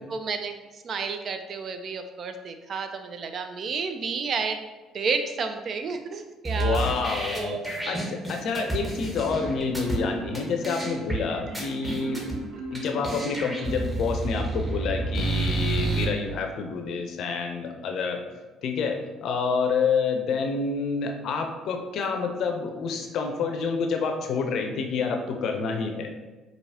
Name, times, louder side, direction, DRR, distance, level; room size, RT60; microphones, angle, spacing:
voice 1, 0.1-4.6 4.9-6.8 7.3-8.0 8.6-8.7, right 5 dB, 50° right, 7 dB, 0.4 m, -31 dB
sound 1, 6.4-10.0 10.3-10.4 10.6-11.2 11.5-12.4 12.7-12.8 13.0-16.0, right 2 dB, 15° right, 1.2 m, -29 dB
voice 2, 6.5-12.2 12.7-18.2 18.6-26.1, left 5 dB, 60° left, 4 dB, 0.5 m, -28 dB
Marimba xylophone, 9.2-14.4, equal, 70° right, 0.8 m, -37 dB
4.5 x 2.7 x 2.7 m, 1.2 s
hypercardioid pair, 50°, 0 cm